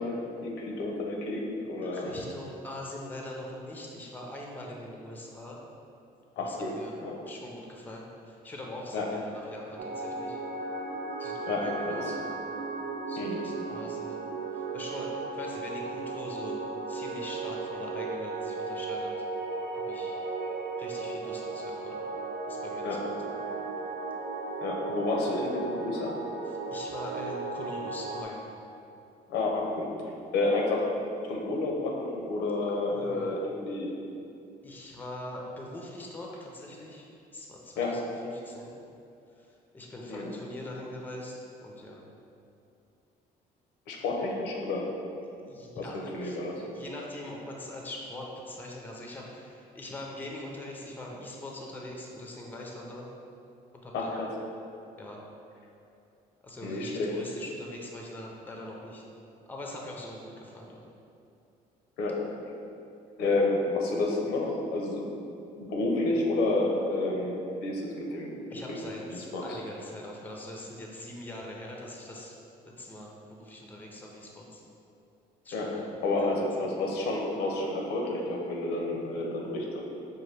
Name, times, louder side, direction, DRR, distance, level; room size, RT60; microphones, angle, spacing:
voice 1, 0.0-2.1 6.4-6.7 7.0-7.2 8.9-9.1 11.5-12.1 13.2-13.5 22.8-23.0 24.6-26.2 29.3-29.9 30.3-30.9 31.3-33.9 37.8-38.0 40.1-40.3 43.9-44.9 45.8-46.6 53.9-54.3 56.6-57.2 62.0-62.2 63.2-65.1 65.6-68.8 69.1-69.6 75.5-75.8 76.0-79.8, left 2 dB, 80° left, -1 dB, 0.7 m, -30 dB
voice 2, 1.8-5.6 6.4-6.9 7.3-10.4 11.2-12.3 13.1-14.2 14.5-16.6 16.9-19.1 19.7-20.2 20.8-22.0 22.5-23.0 26.4-28.5 32.9-33.3 34.6-38.0 38.4-38.7 39.4-39.5 39.7-42.0 45.5-53.1 53.8-54.2 55.0-55.2 56.4-59.0 59.5-60.8 68.5-72.4 72.7-74.6 75.4-75.8 76.1-76.3 76.6-76.7, left 1 dB, 10° left, -1 dB, 0.5 m, -42 dB
sound 1, 9.8-28.2, right 3 dB, 80° right, 0.4 m, -35 dB
5.4 x 2.2 x 3.2 m, 2.6 s
cardioid pair, 110°, 17 cm